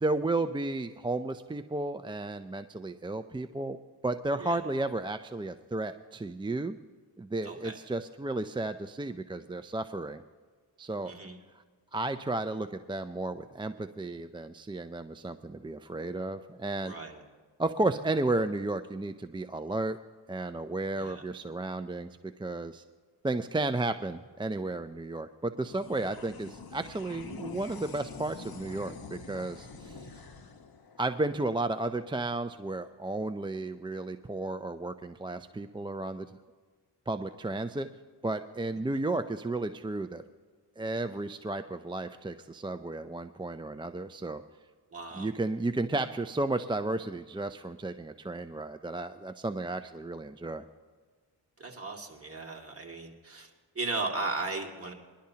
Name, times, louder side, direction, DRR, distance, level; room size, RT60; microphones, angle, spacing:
voice 1, 0.0-3.8 4.0-6.8 7.2-10.2 10.8-11.1 11.9-16.9 17.6-20.0 20.3-22.8 23.2-30.1 31.0-36.4 37.1-37.9 38.2-40.2 40.8-44.4 45.1-50.6, right 2 dB, 10° right, 8 dB, 0.4 m, -33 dB
voice 2, 7.4-7.8 11.0-11.4 16.8-17.2 20.9-21.2 38.7-38.8 44.9-45.3 51.6-53.5 53.7-54.9, right 3 dB, 30° right, 0 dB, 2.2 m, -36 dB
sound 1, 25.6-32.3, left 4 dB, 55° left, 1.2 m, -46 dB
21.0 x 11.5 x 2.8 m, 1.5 s
cardioid pair, 65°, 44 cm